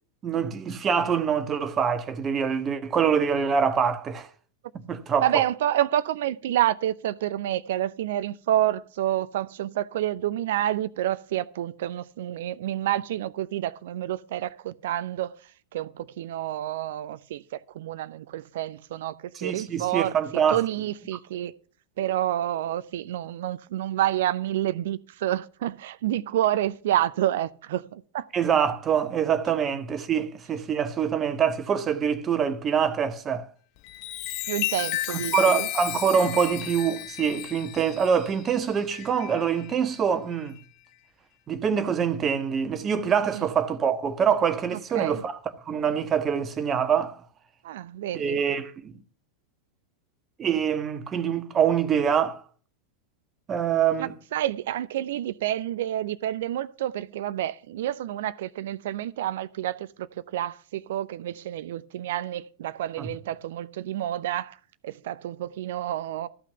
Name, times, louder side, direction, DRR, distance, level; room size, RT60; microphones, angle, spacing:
voice 1, 0.2-4.3 4.8-5.3 19.3-20.6 28.3-33.5 35.1-40.6 41.5-45.4 45.7-47.2 48.1-49.0 50.4-52.4 53.5-54.1 63.0-63.1, right 7 dB, 25° right, 1.3 m, -25 dB
voice 2, 5.2-15.3 15.7-20.2 20.5-21.5 22.0-28.3 34.5-35.7 43.3-43.5 44.9-45.2 47.6-48.4 54.3-64.6 64.8-66.3, right 12 dB, 55° right, 0.6 m, -29 dB
Chime, 33.8-39.7 40.3-40.6, left 15 dB, 45° left, 0.7 m, -33 dB
14.0 x 5.8 x 6.8 m
figure-of-eight pair, 90°, 0 cm